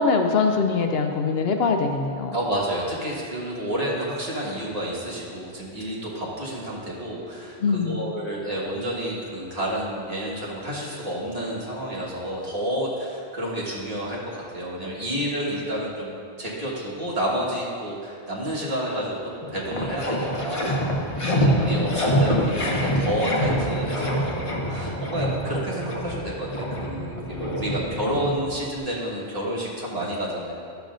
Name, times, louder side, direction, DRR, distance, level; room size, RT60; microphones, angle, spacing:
voice 1, 0.0-2.4 7.6-8.1 21.2-22.2, left 4 dB, 75° left, 4 dB, 0.8 m, -24 dB
voice 2, 2.3-16.1 16.4-26.5 26.8-30.5, equal, 35° right, -6 dB, 1.6 m, -30 dB
sound 1, 19.4-28.8, equal, 35° left, 0.9 m, -26 dB
11.5 x 7.0 x 2.5 m, 2.4 s
omnidirectional pair, 1.1 m